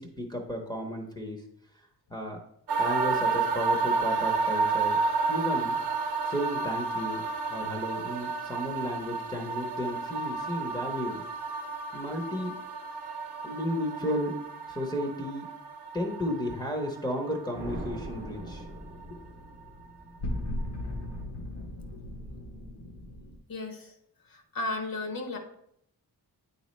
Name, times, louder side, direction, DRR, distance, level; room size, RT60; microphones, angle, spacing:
voice 1, 0.0-1.4 2.1-2.4 2.8-5.0 5.3-5.8 6.3-7.2 7.5-11.2 11.9-12.5 13.4-14.3 14.7-15.5 15.9-18.7, equal, 10° left, -1 dB, 0.6 m, -33 dB
sound 1, 2.7-18.7 18.9-19.0, right 4 dB, 70° right, 0.7 m, -31 dB
sound 2, 17.5-19.8, right 2 dB, 25° right, 0.7 m, -42 dB
sound 3, 17.6-23.4, left 1 dB, 80° left, 1.2 m, -38 dB
voice 2, 23.5-23.9 24.3-25.4, left 2 dB, 55° left, 4 dB, 0.9 m, -34 dB
9.0 x 4.0 x 3.1 m, 0.72 s
wide cardioid pair, 165°, 41 cm